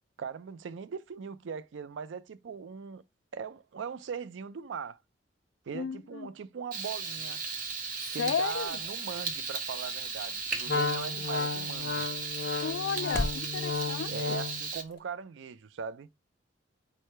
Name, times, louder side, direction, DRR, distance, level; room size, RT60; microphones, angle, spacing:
voice 1, 0.2-3.0 3.3-5.0 5.7-7.4 8.1-12.1 14.1-16.1, right 6 dB, 75° right, 0.4 m, -40 dB
voice 2, 5.7-6.3 8.0-8.8 12.6-14.4, left 6 dB, 85° left, 0.4 m, -34 dB
Frying (food), 6.7-14.8, right 5 dB, 45° right, 0.8 m, -36 dB
sound 1, 7.2-13.5, left 1 dB, 15° left, 0.4 m, -43 dB
Wind instrument woodwind instrument, 10.7-14.7, left 4 dB, 55° left, 0.7 m, -33 dB
4.8 x 2.2 x 4.3 m
head